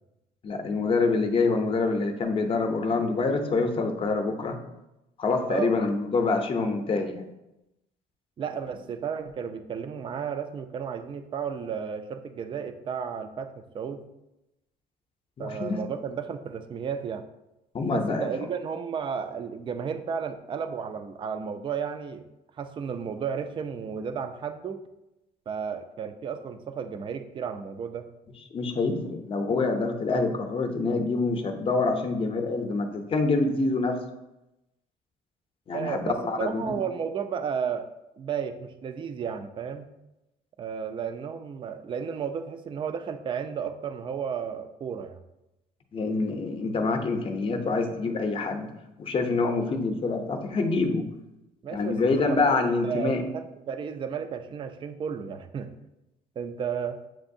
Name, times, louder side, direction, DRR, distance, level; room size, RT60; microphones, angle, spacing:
voice 1, 0.4-4.6 5.2-7.2 15.4-15.8 17.7-18.3 28.5-34.0 35.7-36.6 45.9-48.7 49.0-51.0 51.7-53.2, left 3 dB, 35° left, 5 dB, 0.6 m, -26 dB
voice 2, 8.4-14.0 15.4-17.2 17.9-22.2 22.6-24.8 25.5-28.1 35.7-37.9 38.2-39.9 40.6-45.2 51.6-55.7 56.4-57.0, right 7 dB, 30° right, 9 dB, 0.3 m, -33 dB
7.3 x 2.6 x 2.6 m, 0.93 s
cardioid pair, 110°, 17 cm